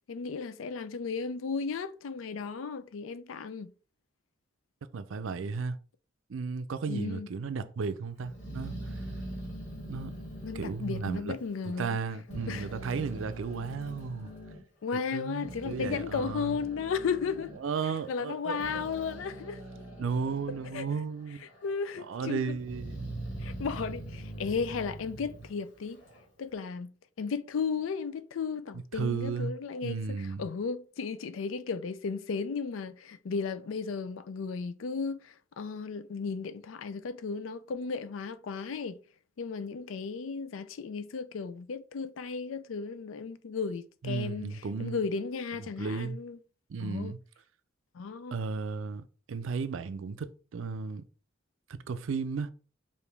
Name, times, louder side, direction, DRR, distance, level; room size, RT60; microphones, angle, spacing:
voice 1, 0.1-3.7 6.9-7.3 10.4-12.0 12.5-12.7 14.8-17.5 18.1-19.6 20.7-20.9 21.6-22.6 23.4-26.0 26.4-39.0 39.4-46.4 46.8-47.1 47.9-48.4, left 5 dB, 90° left, 0.4 m, -35 dB
voice 2, 4.9-5.8 6.3-8.9 9.9-10.1 10.5-11.4 11.7-14.3 14.9-16.6 17.6-18.9 20.0-21.4 22.0-23.0 28.9-29.5 29.8-30.5 44.0-45.0 45.8-46.2 46.7-47.2 48.3-51.0 51.7-52.5, right 5 dB, 80° right, 0.4 m, -34 dB
Growling, 8.2-12.0 12.3-14.6 15.2-21.0 21.3-22.0 22.5-26.3, right 1 dB, 65° left, 1.9 m, -43 dB
4.9 x 2.6 x 3.3 m
head